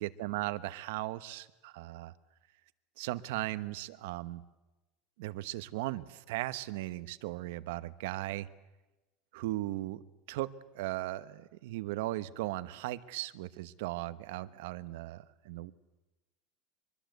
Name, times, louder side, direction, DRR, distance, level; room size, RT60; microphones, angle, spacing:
voice 1, 0.0-2.1 3.0-4.4 5.2-8.5 9.3-10.0 10.3-15.7, right 17 dB, 75° right, 14 dB, 1.1 m, -37 dB
24.5 x 22.5 x 8.2 m, 1.1 s
cardioid pair, 170°, 0 cm